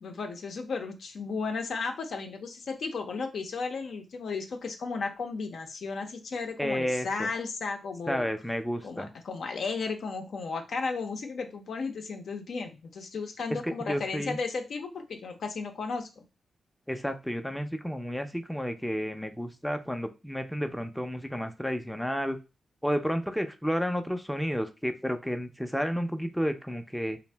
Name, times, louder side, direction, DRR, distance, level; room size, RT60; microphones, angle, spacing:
voice 1, 0.0-8.3 8.8-16.1, left 4 dB, 75° left, 4 dB, 0.5 m, -34 dB
voice 2, 6.6-7.3 8.1-9.1 13.6-14.4 16.9-22.4 22.8-27.2, equal, 5° left, 7 dB, 0.4 m, -31 dB
2.6 x 2.0 x 3.2 m, 0.27 s
cardioid pair, 55°, 0 cm